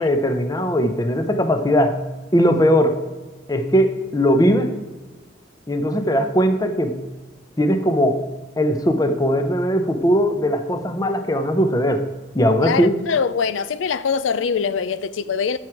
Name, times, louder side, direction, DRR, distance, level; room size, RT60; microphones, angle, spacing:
voice 1, 0.0-2.0 2.3-3.0 3.5-4.7 5.7-7.0 7.6-8.2 8.6-12.1 12.3-12.9, equal, 20° left, 0.7 m, -19 dB
voice 2, 12.6-15.6, left 6 dB, 90° left, 0.4 m, -23 dB
13.5 x 6.0 x 4.7 m
head